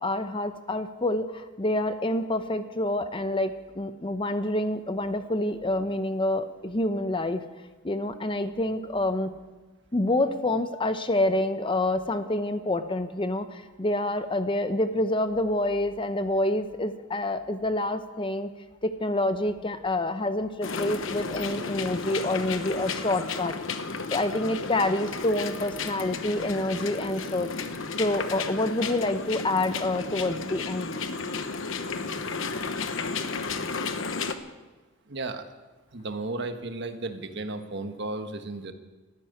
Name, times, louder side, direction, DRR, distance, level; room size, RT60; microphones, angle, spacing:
voice 1, 0.0-7.4 7.8-9.3 9.9-18.5 18.8-23.5 24.1-27.5 28.0-30.9, left 1 dB, 25° left, 10 dB, 0.7 m, -27 dB
sound 1, 20.6-34.3, left 4 dB, 70° left, 1.1 m, -33 dB
voice 2, 35.1-35.5 35.9-38.7, right 2 dB, 60° right, 7 dB, 1.3 m, -34 dB
13.5 x 10.5 x 9.9 m, 1.2 s
head